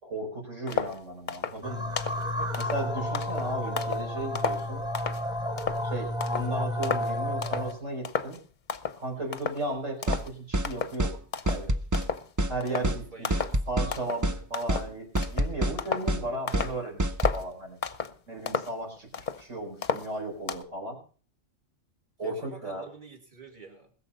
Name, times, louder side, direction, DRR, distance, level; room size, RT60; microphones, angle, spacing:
voice 1, 0.0-2.0 2.6-4.8 5.8-8.4 9.0-11.2 11.5-11.7 12.5-13.3 13.7-17.8 18.3-21.0 22.2-22.8, right 2 dB, 80° right, 0 dB, 4.8 m, -35 dB
sound 1, 0.7-1.0 1.3-1.6 2.0-2.2 2.5-4.1 4.3-5.2 5.6-5.9 6.2-6.5 6.8-7.1 7.4-7.7 8.0-8.4 8.7-9.0 9.3-9.7 10.0-10.3 10.6-11.0 11.3-11.7 11.9-12.3 12.6-12.9 13.2-13.6 13.9-14.3 14.5-16.1 16.5-16.8 17.2-17.5 17.8-18.2 18.5-19.4 19.8-20.6, left 6 dB, 45° left, 0.8 m, -33 dB
sound 2, 1.6-7.8, left 1 dB, 5° right, 1.4 m, -31 dB
voice 2, 2.0-2.6 3.6-3.7 9.1-9.5 12.7-13.5 22.2-23.9, right 3 dB, 40° right, 2 dB, 2.6 m, -48 dB
sound 3, 10.1-10.2 10.5-10.7 11.0-11.2 11.5-12.1 12.4-12.5 12.8-13.0 13.3-13.9 14.2-14.4 14.7-14.8 15.1-15.8 16.1-16.2 16.5-16.7 17.0-17.4, right 1 dB, 25° right, 0.4 m, -26 dB
20.5 x 7.1 x 5.4 m, 0.40 s
omnidirectional pair, 1.3 m